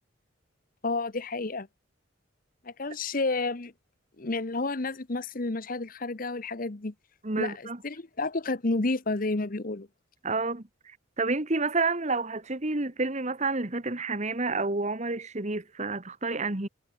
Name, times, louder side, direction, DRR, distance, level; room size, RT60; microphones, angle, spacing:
voice 1, 0.8-1.7 2.6-3.7 4.2-6.9 7.4-9.9, left 3 dB, 45° left, 1.0 m, -30 dB
voice 2, 7.2-7.8 10.2-10.6 11.2-16.7, right 3 dB, 35° right, 1.6 m, -29 dB
head